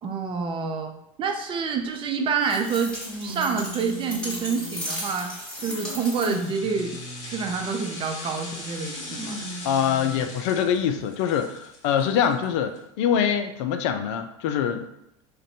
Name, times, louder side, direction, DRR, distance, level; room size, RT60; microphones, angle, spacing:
voice 1, 0.0-0.9 1.2-3.0 3.2-5.3 5.6-7.0 7.3-9.4, right 5 dB, 30° right, 4 dB, 0.5 m, -27 dB
sound 1, 1.8-1.9 3.0-5.1 5.6-7.7 8.8-10.3 11.0-11.1 12.2-12.3, right 1 dB, 75° right, 1.0 m, -39 dB
sound 2, 2.4-6.6, equal, 5° left, 1.4 m, -36 dB
sound 3, 5.5-12.8 13.1-13.2, left 2 dB, 40° left, 1.1 m, -40 dB
voice 2, 9.6-14.9, left 8 dB, 60° left, 8 dB, 0.4 m, -24 dB
2.6 x 2.2 x 4.0 m, 0.79 s
hypercardioid pair, 80°, 18 cm